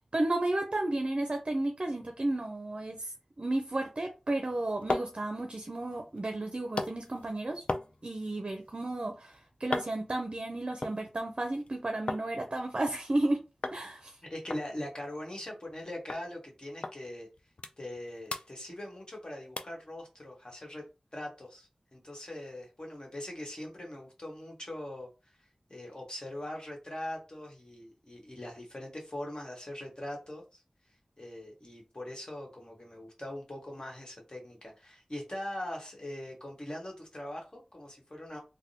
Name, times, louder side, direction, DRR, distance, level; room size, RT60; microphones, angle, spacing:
voice 1, 0.1-7.6 8.0-13.4 13.7-14.2, right 2 dB, 50° right, 0.5 m, -33 dB
sound 1, 4.4-12.3 12.6-13.3 13.6-13.8 14.1-14.2 14.5-15.8 16.1-16.2 16.8-17.0 17.3-18.0 18.3-19.2 19.6-19.8 20.3-20.4, left 2 dB, 70° left, 0.3 m, -39 dB
voice 2, 14.3-17.3 17.8-20.8 21.1-25.1 25.7-30.6 31.2-38.4, left 1 dB, 45° left, 1.3 m, -41 dB
3.4 x 2.2 x 2.7 m
wide cardioid pair, 50°, 2 cm